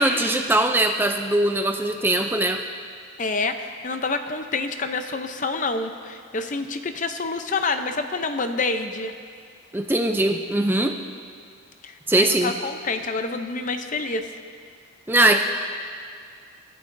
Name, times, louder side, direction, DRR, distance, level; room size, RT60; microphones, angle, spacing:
voice 1, 0.0-2.6 9.7-11.0 12.1-12.5 15.1-15.4, right 1 dB, 10° right, 4 dB, 0.4 m, -21 dB
voice 2, 3.2-9.1 11.8-14.3, left 3 dB, 35° left, 7 dB, 0.6 m, -27 dB
26.0 x 13.0 x 2.7 m, 2.1 s
head